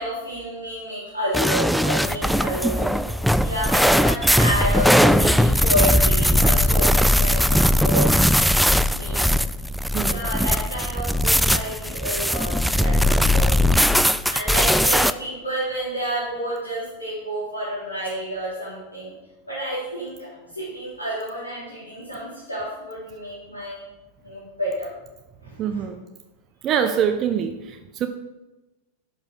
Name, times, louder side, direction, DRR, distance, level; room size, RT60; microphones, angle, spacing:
voice 1, 0.0-3.0 3.4-8.1 8.9-9.4 10.0-13.8 14.3-19.1 19.5-23.8 24.2-24.9 25.4-25.9 26.8-26.9, equal, 80° left, -10 dB, 3.7 m, -30 dB
sound 1, 1.3-15.1, equal, ahead, 0.3 m, -19 dB
voice 2, 9.9-10.3 25.6-26.0 26.6-28.1, right 8 dB, 30° right, 8 dB, 0.7 m, -24 dB
11.0 x 6.5 x 4.9 m, 1.1 s
figure-of-eight pair, 90°, 0 cm